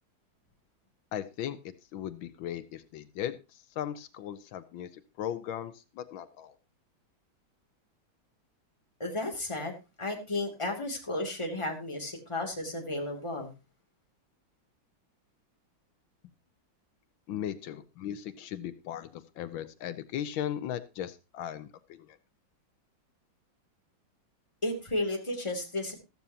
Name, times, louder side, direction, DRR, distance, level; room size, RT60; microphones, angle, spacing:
voice 1, 1.1-1.6 1.9-6.5 17.3-22.2, left 10 dB, 85° left, 12 dB, 1.6 m, -37 dB
voice 2, 9.0-13.5 24.6-25.9, left 2 dB, 15° left, 2 dB, 2.6 m, -33 dB
14.0 x 13.5 x 2.8 m, 0.27 s
omnidirectional pair, 2.1 m